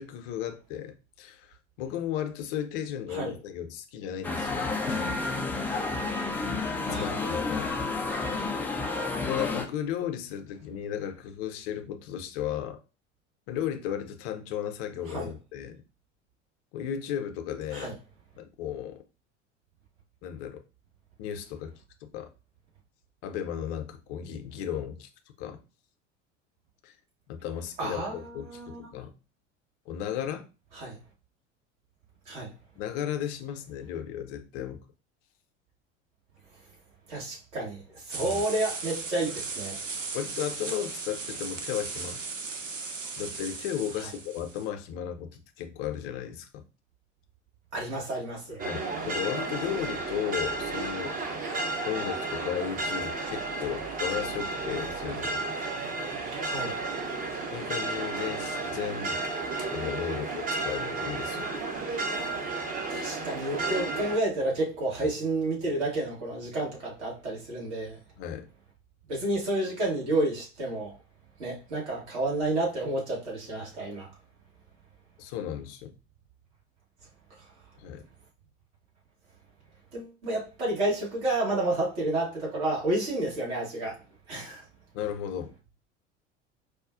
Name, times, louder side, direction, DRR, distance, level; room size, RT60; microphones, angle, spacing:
voice 1, 0.0-5.0 6.9-7.8 9.2-12.8 13.5-15.8 16.7-18.0 18.4-19.0 20.2-20.6 21.2-21.7 22.0-22.3 23.2-25.1 25.4-25.6 26.8-27.0 27.3-29.1 29.9-30.5 32.8-34.8 38.2-38.4 40.1-42.2 43.2-46.7 48.7-51.2 51.8-55.4 57.5-59.2 59.7-61.4 65.0-65.1 68.2-68.5 75.2-75.9 77.8-78.0 84.9-85.5, left 9 dB, 50° left, 0.6 m, -35 dB
sound 1, 4.2-9.7, left 3 dB, 5° left, 0.3 m, -30 dB
voice 2, 6.9-7.2 15.1-15.3 17.7-17.9 27.8-28.9 30.7-31.0 32.3-32.5 37.1-39.8 47.7-48.7 56.4-56.8 62.9-68.0 69.1-70.9 71.4-74.1 79.9-84.0 84.3-84.6, right 2 dB, 65° right, 1.8 m, -30 dB
sound 2, 38.1-44.7, right 4 dB, 90° right, 0.5 m, -37 dB
sound 3, 48.6-64.2, right 3 dB, 25° right, 0.7 m, -32 dB
4.8 x 2.3 x 2.5 m
figure-of-eight pair, 70°, 37 cm